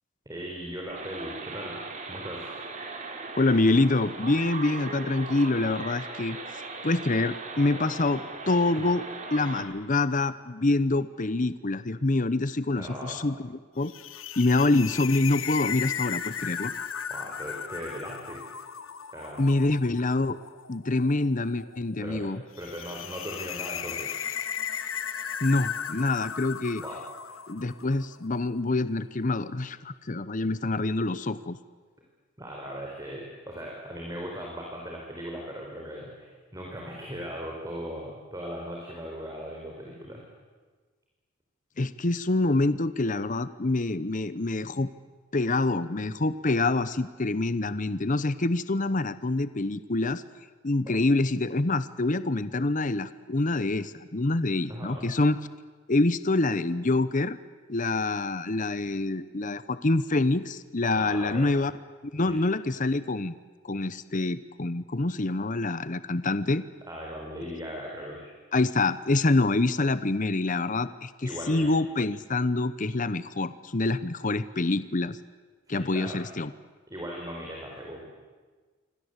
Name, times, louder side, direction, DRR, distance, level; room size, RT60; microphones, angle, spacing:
voice 1, 0.3-1.8 2.1-2.5 12.7-13.2 17.1-18.4 19.1-19.4 22.0-22.3 22.6-24.2 26.8-27.0 32.4-40.2 54.7-55.1 60.9-61.5 62.3-62.5 66.9-68.3 71.2-71.8 75.7-76.2 76.9-78.0, equal, 15° right, -1 dB, 4.4 m, -38 dB
sound 1, 0.9-9.6, right 3 dB, 35° right, 3.5 m, -39 dB
voice 2, 3.4-6.4 6.8-9.0 9.3-13.9 14.4-16.7 19.4-20.4 20.7-22.4 25.4-26.8 27.5-31.6 41.8-44.9 45.3-50.2 50.6-55.4 55.9-57.4 57.7-61.7 62.1-63.3 63.6-66.6 68.5-75.2 75.7-76.5, left 2 dB, 40° left, 14 dB, 0.9 m, -26 dB
sound 2, 13.8-28.2, left 8 dB, 75° left, 1.2 m, -36 dB
27.5 x 24.5 x 8.2 m, 1.4 s
head